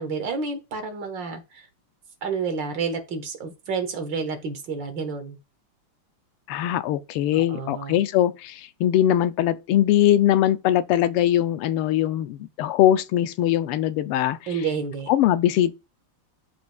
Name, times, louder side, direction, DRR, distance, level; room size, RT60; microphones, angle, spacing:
voice 1, 0.0-1.7 2.2-5.4 7.3-8.0 14.5-15.1, right 5 dB, 60° right, 1.9 m, -30 dB
voice 2, 6.5-14.4 15.1-15.7, left 12 dB, 90° left, 1.5 m, -21 dB
12.0 x 5.2 x 2.3 m
omnidirectional pair, 2.4 m